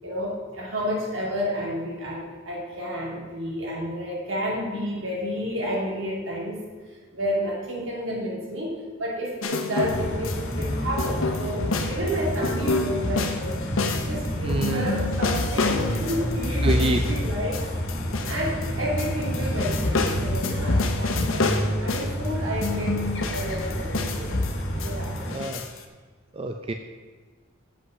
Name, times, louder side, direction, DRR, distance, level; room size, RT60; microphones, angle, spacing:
voice 1, 0.0-6.6 7.1-13.6 13.9-17.6 18.2-24.3 24.8-25.1, equal, 75° right, -4 dB, 2.9 m, -31 dB
sound 1, 9.4-10.7 11.0-18.7 19.0-22.3 22.6-25.8, left 3 dB, 80° left, 0.9 m, -28 dB
sound 2, 9.8-25.4, equal, 60° left, 1.5 m, -29 dB
voice 2, 14.4-15.0 16.6-17.0 25.2-25.7 26.3-26.7, right 2 dB, 25° right, 5 dB, 0.4 m, -27 dB
7.8 x 5.5 x 6.3 m, 1.4 s
head